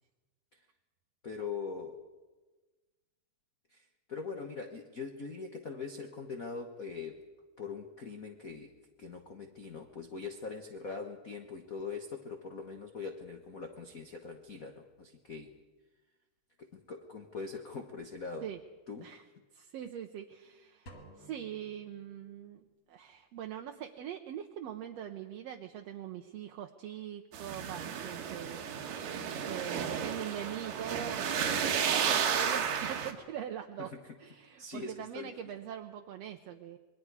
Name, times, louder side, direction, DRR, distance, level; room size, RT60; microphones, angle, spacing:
voice 1, 1.2-2.0 3.7-7.2 7.6-8.7 9.0-15.5 16.6-18.5 18.9-19.1 33.8-34.0 34.6-35.3, left 4 dB, 75° left, 4 dB, 0.7 m, -42 dB
voice 2, 19.5-22.6 22.9-28.9 29.4-31.4 31.7-33.9 34.2-36.8, right 10 dB, 70° right, 4 dB, 1.7 m, -42 dB
sound 1, 20.9-22.7, right 1 dB, 40° left, 2.7 m, -55 dB
sound 2, 27.3-33.1, right 7 dB, 85° right, 3.1 m, -32 dB
27.0 x 22.0 x 4.9 m, 1.2 s
omnidirectional pair, 3.6 m